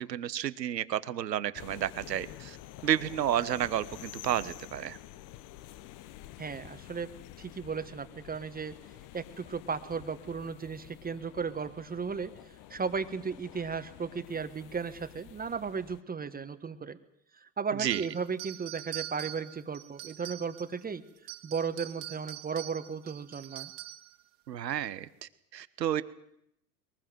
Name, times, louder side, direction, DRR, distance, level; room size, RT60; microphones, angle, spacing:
voice 1, 0.0-2.6 2.8-5.0 17.8-18.1 24.5-26.0, right 11 dB, 80° right, 15 dB, 1.3 m, -31 dB
sound 1, 1.5-16.0, left 14 dB, 40° left, 1.0 m, -49 dB
voice 2, 6.4-7.1 7.4-8.7 9.1-12.3 12.7-17.0 17.3-21.0 21.4-23.7, right 5 dB, 20° right, 9 dB, 1.5 m, -35 dB
sound 2, 17.9-20.8 21.2-24.2, right 15 dB, 60° right, 2.6 m, -44 dB
22.5 x 19.5 x 7.7 m, 0.78 s
hypercardioid pair, 90°, 49 cm